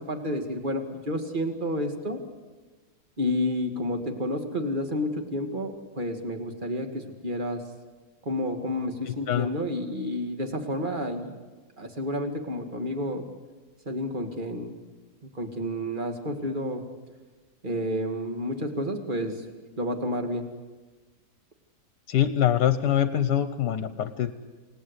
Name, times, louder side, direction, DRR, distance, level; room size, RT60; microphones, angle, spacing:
voice 1, 0.0-2.2 3.2-7.6 8.2-11.3 11.8-13.3 13.9-14.7 15.3-16.8 17.6-19.5 19.8-20.5, left 1 dB, 25° right, 5 dB, 2.4 m, -30 dB
voice 2, 9.1-9.5 22.1-24.3, left 10 dB, 70° left, 11 dB, 1.5 m, -24 dB
28.0 x 19.0 x 8.4 m, 1.3 s
omnidirectional pair, 1.9 m